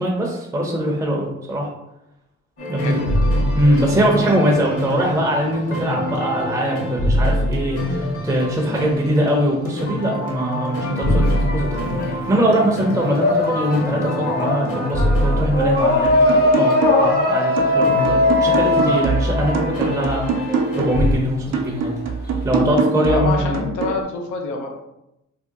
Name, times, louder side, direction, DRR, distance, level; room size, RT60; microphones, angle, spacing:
voice 1, 0.0-1.7 2.7-3.0 3.5-11.9 12.3-21.9 22.4-23.6, equal, 10° right, -2 dB, 0.6 m, -22 dB
sound 1, 2.6-21.1, equal, 50° left, 1.3 m, -25 dB
voice 2, 2.8-3.2 23.1-24.8, left 3 dB, 75° left, 3 dB, 0.7 m, -26 dB
sound 2, 11.0-12.2 12.5-20.3, left 2 dB, 30° left, 0.8 m, -20 dB
sound 3, 16.0-17.2 17.6-21.1 21.5-24.0, right 4 dB, 60° right, 0.6 m, -24 dB
2.7 x 2.2 x 3.6 m, 0.86 s
cardioid pair, 90°, 30 cm